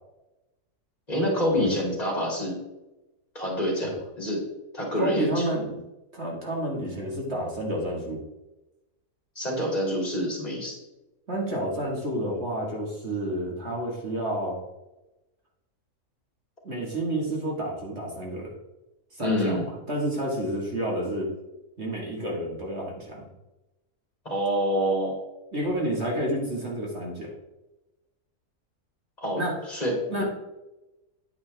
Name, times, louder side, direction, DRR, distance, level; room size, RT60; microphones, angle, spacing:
voice 1, 1.1-2.6 3.3-3.9 4.2-4.4 4.7-5.4 9.4-10.7 19.2-19.7 24.2-25.2 29.2-30.2, equal, 25° left, -2 dB, 2.9 m, -27 dB
voice 2, 4.9-5.8 6.1-8.2 11.3-14.6 16.6-18.6 19.1-21.3 21.8-23.3 25.5-27.3 29.4-29.6 30.1-30.2, right 1 dB, 45° right, -2 dB, 2.1 m, -29 dB
9.7 x 9.6 x 3.4 m, 1.0 s
omnidirectional pair, 1.6 m